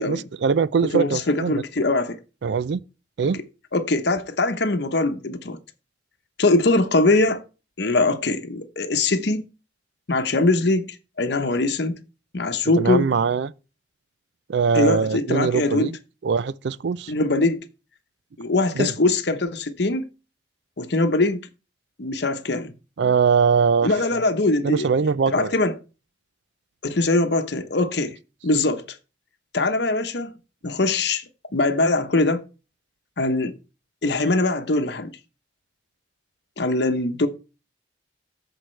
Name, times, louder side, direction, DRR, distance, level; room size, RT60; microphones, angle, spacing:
voice 1, 0.0-1.6 2.4-2.8 3.2-3.4 12.8-13.5 14.5-16.0 16.2-17.1 18.8-18.9 23.0-23.9 24.6-25.5, right 5 dB, 65° right, 0.4 m, -22 dB
voice 2, 0.9-2.2 3.2-3.3 3.7-5.6 6.4-7.4 7.8-9.5 10.1-12.0 12.3-13.1 14.7-15.9 17.1-17.6 18.4-20.1 20.8-21.4 22.0-22.7 23.8-24.9 25.3-25.7 26.8-28.2 28.4-28.8 29.5-30.3 30.6-31.2 31.5-32.4 33.2-33.5 34.0-35.1 36.6-37.3, left 2 dB, 60° left, 0.9 m, -22 dB
14.0 x 5.0 x 3.2 m
head